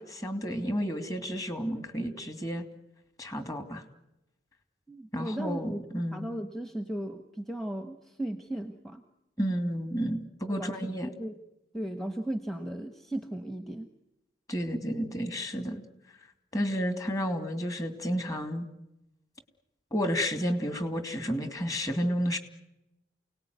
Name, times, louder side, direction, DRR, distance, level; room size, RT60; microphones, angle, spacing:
voice 1, 0.1-2.6 3.2-3.8 5.1-6.3 9.4-11.1 14.5-15.8 16.5-18.7 19.9-22.4, equal, 20° left, 8 dB, 2.7 m, -31 dB
voice 2, 4.9-5.8 6.1-9.0 10.5-11.4 11.7-13.9, right 1 dB, ahead, 7 dB, 1.3 m, -36 dB
29.0 x 19.0 x 9.5 m, 0.92 s
head